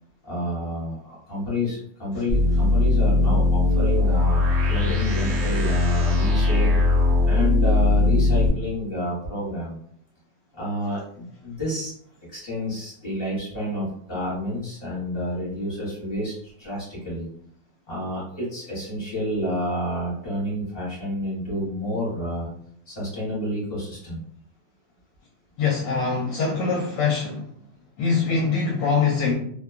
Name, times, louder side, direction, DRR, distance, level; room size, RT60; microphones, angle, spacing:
voice 1, 0.2-4.4 4.7-6.7 7.2-9.8 10.5-11.9 12.3-17.3 17.9-22.5 22.9-24.2, left 1 dB, 40° left, -7 dB, 1.0 m, -29 dB
sound 1, 2.3-8.5, left 2 dB, 80° right, 0.6 m, -20 dB
voice 2, 25.6-27.5 28.0-29.3, left 5 dB, 75° left, -2 dB, 1.1 m, -23 dB
2.8 x 2.2 x 2.3 m, 0.63 s
omnidirectional pair, 2.0 m